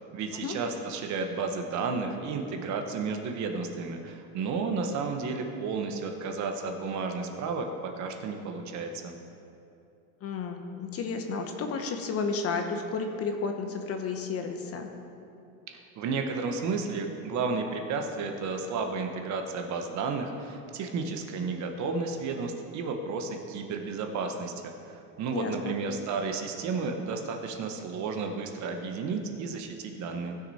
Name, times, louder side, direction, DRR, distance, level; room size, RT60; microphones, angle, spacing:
voice 1, 0.0-9.1 15.7-30.3, right 4 dB, 40° right, 4 dB, 1.1 m, -32 dB
voice 2, 10.2-14.9 25.3-25.8, left 4 dB, 35° left, 5 dB, 0.9 m, -32 dB
16.0 x 6.3 x 4.2 m, 2.7 s
supercardioid pair, 130°, 42 cm